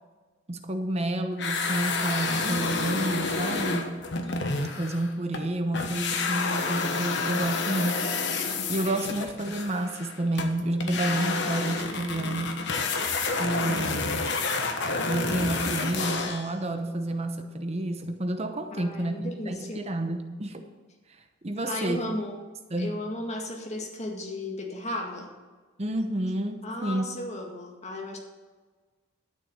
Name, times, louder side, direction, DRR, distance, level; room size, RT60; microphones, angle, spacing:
voice 1, 0.5-4.0 4.8-8.1 8.7-12.6 13.4-14.3 15.0-20.6 21.4-22.0 22.7-23.0 25.8-27.1, right 1 dB, 30° right, 6 dB, 0.9 m, -30 dB
sound 1, 1.4-5.5 5.7-16.5, left 4 dB, 60° left, 1.3 m, -29 dB
voice 2, 2.3-3.1 18.7-19.9 21.7-22.4 22.8-25.3 26.6-28.2, left 1 dB, 35° left, 0 dB, 2.0 m, -35 dB
12.5 x 6.8 x 7.4 m, 1.3 s
head